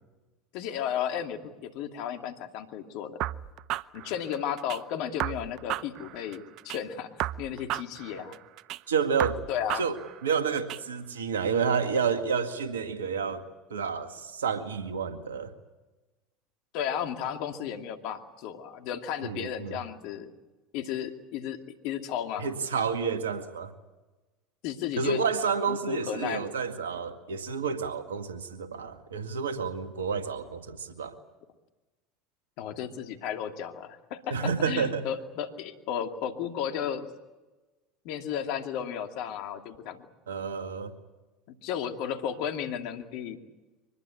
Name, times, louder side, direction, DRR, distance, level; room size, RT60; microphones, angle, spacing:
voice 1, 0.5-3.2 3.9-7.1 7.4-8.4 9.5-9.8 16.7-20.3 20.7-21.6 21.8-22.5 24.6-25.2 25.7-26.4 32.6-37.1 38.0-40.1 41.6-43.4, left 9 dB, 65° left, 6 dB, 2.5 m, -34 dB
sound 1, 3.2-4.8 5.2-6.8 7.2-8.8 9.2-10.8, right 14 dB, 55° right, 0.7 m, -34 dB
voice 2, 8.9-9.4 9.8-10.0 10.2-13.4 13.7-15.5 19.2-19.8 22.4-23.7 25.0-31.2 34.3-35.1 40.3-40.9, right 6 dB, 85° right, 8 dB, 2.0 m, -30 dB
25.0 x 20.5 x 8.5 m, 1.2 s
hypercardioid pair, 75°, 0 cm